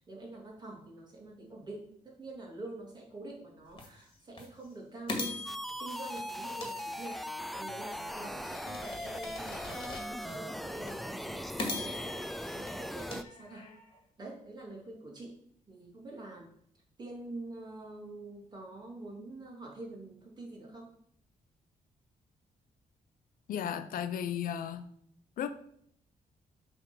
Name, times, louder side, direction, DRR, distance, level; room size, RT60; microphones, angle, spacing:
voice 1, 0.0-5.5 5.8-9.8 10.1-13.7 14.2-15.4 15.7-16.5 17.0-20.9, right 2 dB, 30° right, -2 dB, 2.6 m, -46 dB
sound 1, 3.8-3.9 4.4-4.5 5.1-7.4 7.9-10.4 10.9-11.0 11.6-13.9, left 2 dB, 35° left, 1.9 m, -41 dB
sound 2, 5.5-13.2, equal, ahead, 0.3 m, -39 dB
voice 2, 23.5-24.8 25.4-25.5, left 9 dB, 80° left, 10 dB, 0.7 m, -34 dB
7.9 x 3.7 x 6.1 m, 0.67 s
cardioid pair, 130°, 14 cm